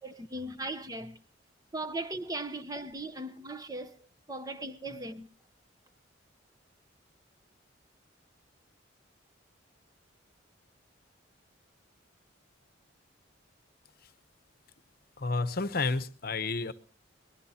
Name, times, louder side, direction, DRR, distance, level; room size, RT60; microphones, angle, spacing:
voice 1, 0.0-1.2 1.7-5.3, right 2 dB, 20° right, 0.8 m, -38 dB
voice 2, 15.2-16.7, left 3 dB, 50° left, 0.9 m, -31 dB
23.5 x 20.0 x 2.8 m
head